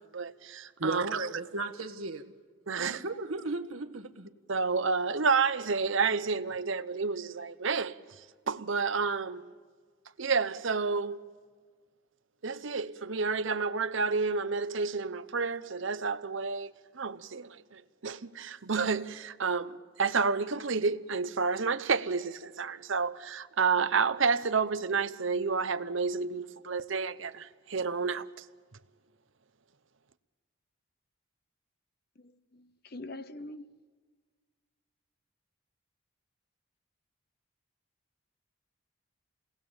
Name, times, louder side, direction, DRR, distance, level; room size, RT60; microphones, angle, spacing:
voice 1, 0.0-1.4 2.7-3.0 4.5-8.0 8.5-9.5 10.2-11.2 12.4-28.3, right 5 dB, 65° right, 0.8 m, -30 dB
voice 2, 0.8-2.3 2.8-4.3, right 3 dB, 85° right, 1.5 m, -35 dB
voice 3, 32.2-33.6, left 2 dB, 45° left, 0.9 m, -44 dB
29.0 x 19.5 x 7.2 m
head